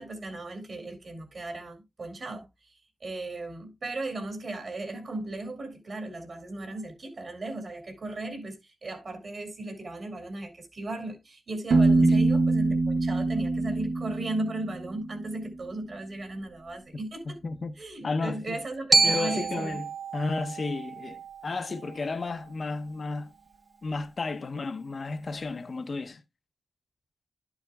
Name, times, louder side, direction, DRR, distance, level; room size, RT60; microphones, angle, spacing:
voice 1, 0.0-17.4 17.8-19.8, right 2 dB, 55° right, 2.2 m, -36 dB
Piano, 11.7-15.4, right 3 dB, 85° right, 0.9 m, -24 dB
voice 2, 17.4-17.7 18.0-18.6 19.0-19.9 20.1-23.3 23.8-26.2, left 3 dB, 45° left, 0.7 m, -32 dB
Glockenspiel, 18.9-23.0, right 4 dB, 30° right, 0.4 m, -29 dB
12.0 x 7.0 x 2.2 m
wide cardioid pair, 150°, 0 cm